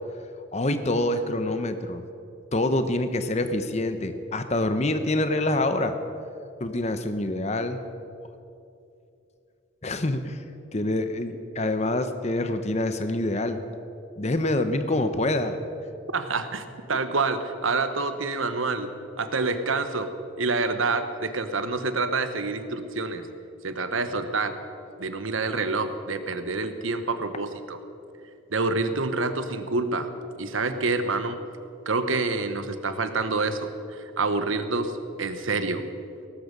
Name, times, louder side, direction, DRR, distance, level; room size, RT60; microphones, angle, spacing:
voice 1, 0.5-2.0 2.5-6.0 6.6-7.9 9.8-10.4 10.7-13.6 14.2-15.6, left 1 dB, 35° left, 9 dB, 0.9 m, -26 dB
voice 2, 16.1-18.9 19.2-20.1 20.4-23.2 23.6-24.6 25.0-27.8 28.5-31.4 31.8-34.9 35.2-35.8, right 3 dB, 80° right, 9 dB, 1.2 m, -27 dB
18.0 x 14.5 x 5.4 m, 2.7 s
head